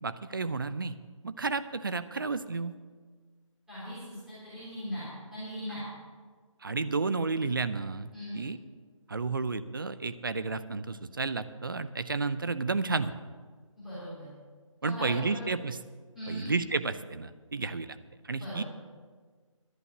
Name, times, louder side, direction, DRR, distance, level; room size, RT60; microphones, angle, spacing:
voice 1, 0.0-1.0 1.2-2.8 6.6-8.6 9.1-13.1 14.8-15.8 16.3-18.0 18.3-18.6, right 4 dB, 40° right, 13 dB, 0.5 m, -31 dB
voice 2, 3.7-5.8 8.1-8.4 13.8-14.3 14.8-15.4 16.1-16.5 18.4-18.6, equal, ahead, -14 dB, 3.2 m, -39 dB
11.5 x 8.9 x 6.9 m, 1.5 s
figure-of-eight pair, 170°, 17 cm